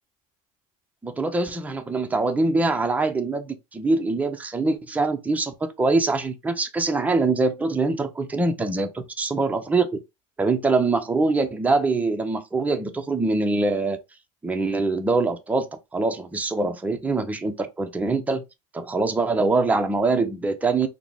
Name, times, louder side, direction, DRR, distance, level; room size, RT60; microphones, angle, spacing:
voice 1, 1.0-9.9 10.4-14.0 14.4-18.4 18.7-20.9, right 3 dB, 10° right, 0.5 m, -24 dB
3.6 x 2.0 x 3.2 m
supercardioid pair, 105°, 19 cm